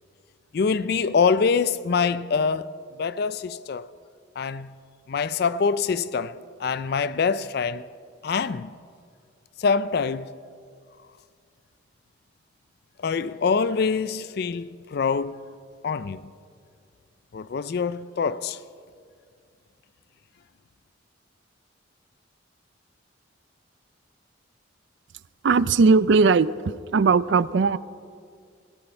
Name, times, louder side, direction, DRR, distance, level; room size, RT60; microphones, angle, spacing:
voice 1, 0.5-2.7 3.0-3.9 4.4-4.7 5.1-7.8 8.2-8.7 9.6-10.3 13.0-15.4 15.8-16.2 17.3-18.6, left 5 dB, 50° left, 0.3 m, -25 dB
voice 2, 25.4-27.8, right 4 dB, 60° right, 0.4 m, -19 dB
17.5 x 17.0 x 4.4 m
head